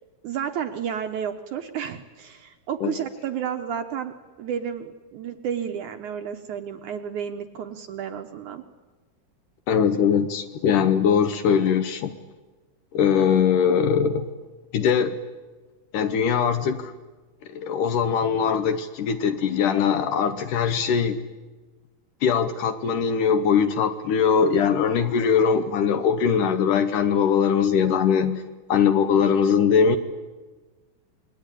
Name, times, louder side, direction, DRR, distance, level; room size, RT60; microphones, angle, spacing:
voice 1, 0.2-8.6, right 8 dB, 65° right, 7 dB, 2.1 m, -31 dB
voice 2, 9.7-12.1 12.9-14.3 14.7-15.2 15.9-16.9 17.5-21.2 22.2-28.4 28.7-30.0, left 7 dB, 70° left, 10 dB, 2.2 m, -21 dB
27.5 x 21.5 x 9.9 m, 1.3 s
omnidirectional pair, 4.5 m